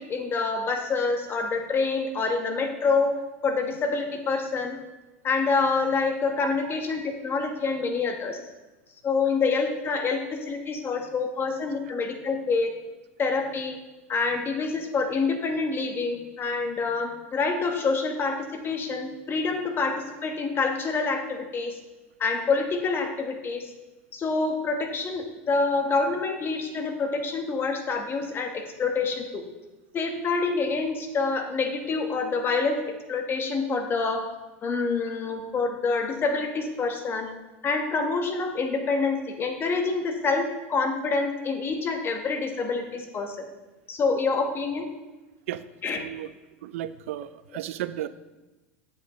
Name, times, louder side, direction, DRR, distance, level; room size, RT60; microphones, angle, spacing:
voice 1, 0.0-3.1 3.4-4.8 5.2-8.4 9.0-12.7 13.2-13.8 14.1-21.8 22.2-23.7 24.1-29.4 29.9-34.3 34.6-37.3 37.6-43.4 43.9-44.9 45.8-46.0, left 4 dB, 30° left, 4 dB, 1.3 m, -27 dB
voice 2, 45.5-46.3 46.6-48.1, right 12 dB, 75° right, 13 dB, 0.4 m, -34 dB
8.0 x 7.9 x 3.1 m, 1.1 s
hypercardioid pair, 95°, 7 cm